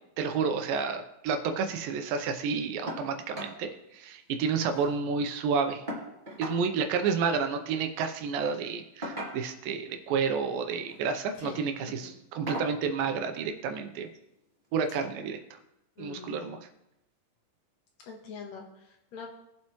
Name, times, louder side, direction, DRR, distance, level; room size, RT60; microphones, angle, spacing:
voice 1, 0.2-5.8 6.4-14.1 14.7-15.6 16.0-16.6, right 5 dB, 80° right, 6 dB, 2.4 m, -30 dB
sound 1, 2.9-3.1 3.3-3.6 3.9-4.0 4.3-5.0 5.9-6.6 7.9-8.1 9.0-9.7 10.7-11.0 11.5-11.7 12.5-12.8 14.0-14.1 14.6-14.7, equal, 15° right, 1.9 m, -38 dB
voice 2, 6.6-6.9 11.4-12.2 16.0-16.6 18.0-19.4, left 5 dB, 60° left, 1 dB, 2.0 m, -45 dB
19.5 x 7.5 x 3.1 m, 0.86 s
omnidirectional pair, 4.3 m